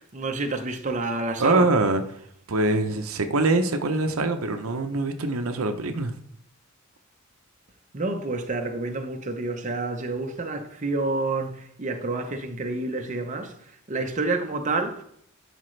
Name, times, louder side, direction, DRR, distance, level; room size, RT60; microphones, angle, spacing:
voice 1, 0.0-1.7 7.9-15.0, right 3 dB, 35° right, 0.8 m, -29 dB
voice 2, 1.4-2.0 2.5-6.1, right 2 dB, 80° right, 0.7 m, -23 dB
11.5 x 5.1 x 3.2 m
head